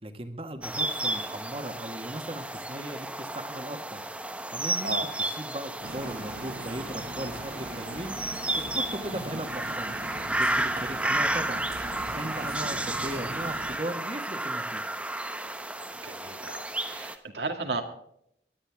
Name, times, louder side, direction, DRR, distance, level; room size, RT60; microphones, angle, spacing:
voice 1, 0.0-4.0 4.5-10.0 10.4-11.7 12.0-14.8, right 1 dB, 30° right, 7 dB, 1.7 m, -38 dB
sound 1, 0.6-17.2, right 1 dB, 5° right, 1.0 m, -32 dB
sound 2, 5.8-13.8, right 2 dB, 55° right, 1.9 m, -41 dB
voice 2, 16.0-17.8, right 3 dB, 80° right, 4 dB, 2.2 m, -35 dB
24.0 x 11.5 x 3.6 m, 0.72 s
head